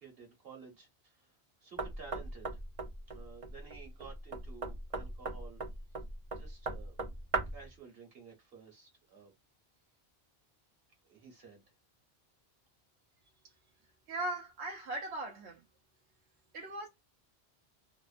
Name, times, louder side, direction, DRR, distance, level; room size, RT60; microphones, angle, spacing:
voice 1, 0.0-1.3 1.6-2.5 3.1-5.6 6.4-7.0 7.5-9.3 11.1-11.6, right 5 dB, 65° right, 1.1 m, -53 dB
Knock, 1.8-7.7, right 3 dB, 45° right, 0.5 m, -39 dB
voice 2, 14.1-15.6 16.5-16.9, right 1 dB, 80° right, 0.8 m, -38 dB
2.9 x 2.1 x 2.4 m
omnidirectional pair, 1.1 m